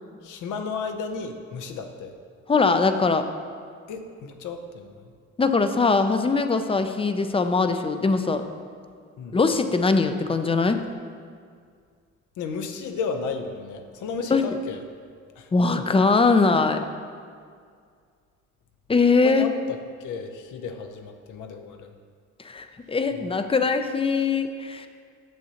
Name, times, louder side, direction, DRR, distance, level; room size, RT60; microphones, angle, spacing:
voice 1, 0.2-2.1 3.9-5.1 9.2-9.4 12.4-14.8 15.4-15.5 19.2-21.9 23.1-23.3, left 5 dB, 80° left, 6 dB, 0.7 m, -33 dB
voice 2, 2.5-3.3 5.4-8.5 9.3-10.8 14.3-14.6 15.5-16.8 18.9-19.5 22.4-24.9, left 4 dB, 20° left, 8 dB, 0.4 m, -21 dB
9.1 x 6.7 x 2.9 m, 2.1 s
cardioid pair, 90°, 30 cm